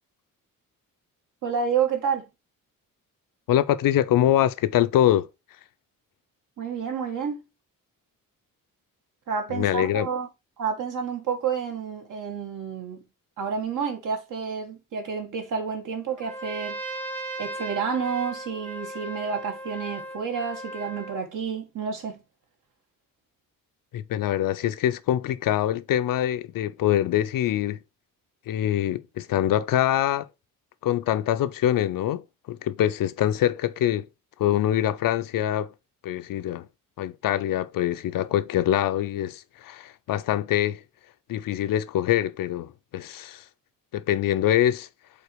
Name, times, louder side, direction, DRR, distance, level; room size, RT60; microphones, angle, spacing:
voice 1, 1.4-2.3 6.6-7.5 9.3-10.3 10.6-13.0 13.4-16.8 17.4-22.2, right 6 dB, 65° right, 1.9 m, -29 dB
voice 2, 3.5-5.3 9.5-10.1 23.9-27.8 28.5-30.3 30.8-34.1 34.4-35.7 36.0-36.7 37.0-40.8 41.3-43.4 43.9-44.9, left 12 dB, 70° left, 0.6 m, -24 dB
Trumpet, 16.2-21.2, right 2 dB, 5° left, 0.8 m, -37 dB
5.2 x 4.4 x 4.7 m
cardioid pair, 155°, 34 cm